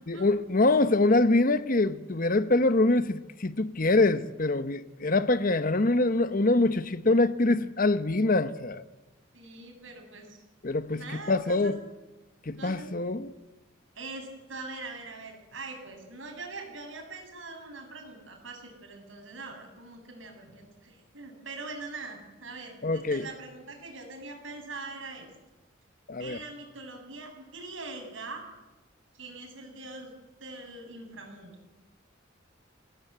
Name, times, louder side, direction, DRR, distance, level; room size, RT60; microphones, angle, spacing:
voice 1, 0.1-8.8 10.6-11.8 12.5-13.3 22.8-23.3 26.1-26.4, left 2 dB, 45° left, 1.0 m, -24 dB
voice 2, 9.3-10.4 10.9-11.7 12.6-12.9 14.0-25.3 26.2-28.4 29.1-30.1 30.4-31.5, right 3 dB, 80° right, 7.1 m, -42 dB
27.0 x 18.5 x 8.1 m
head